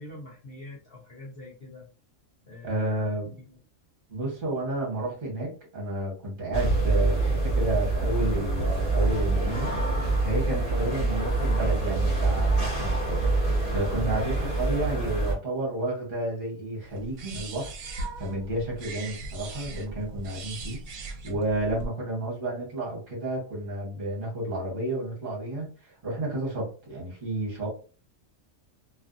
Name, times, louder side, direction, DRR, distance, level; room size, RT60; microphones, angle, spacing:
voice 1, 0.0-1.9 2.4-3.6 13.9-14.3, left 2 dB, 55° left, -3 dB, 0.8 m, -44 dB
voice 2, 2.6-3.3 4.1-27.7, right 1 dB, 45° right, -2 dB, 1.2 m, -31 dB
sound 1, 6.5-15.3, right 2 dB, 25° left, 1.4 m, -25 dB
sound 2, 16.9-21.9, right 2 dB, 75° right, 0.9 m, -39 dB
2.6 x 2.4 x 2.4 m, 0.36 s
omnidirectional pair, 1.4 m